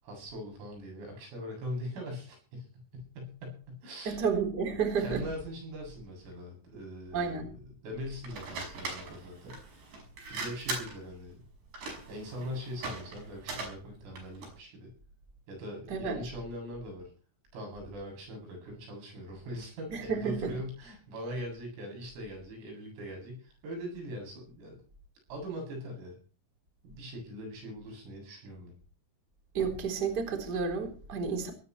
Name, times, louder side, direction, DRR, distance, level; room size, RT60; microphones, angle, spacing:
voice 1, 0.0-2.7 2.9-4.3 5.0-9.6 10.3-11.4 12.1-14.9 15.5-17.1 17.5-24.8 25.3-26.2 26.8-28.7, equal, 85° right, 10.5 m, -41 dB
voice 2, 4.1-5.2 7.1-7.5 15.9-16.2 19.9-20.5 29.5-31.5, right 5 dB, 20° right, 3.7 m, -31 dB
sound 1, 8.2-14.6, right 3 dB, 55° right, 7.7 m, -40 dB
20.5 x 17.5 x 3.2 m
omnidirectional pair, 5.8 m